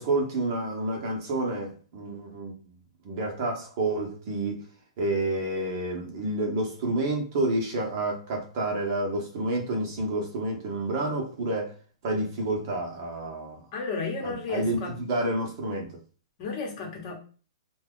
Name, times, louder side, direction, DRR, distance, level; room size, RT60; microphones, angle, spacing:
voice 1, 0.0-2.5 3.0-4.7 5.0-11.8 12.0-13.6 14.2-15.9, right 2 dB, 35° right, 0.9 m, -29 dB
voice 2, 13.7-14.9 16.4-17.2, left 4 dB, 30° left, 1.0 m, -33 dB
2.8 x 2.3 x 3.6 m
hypercardioid pair, 170°, 3 cm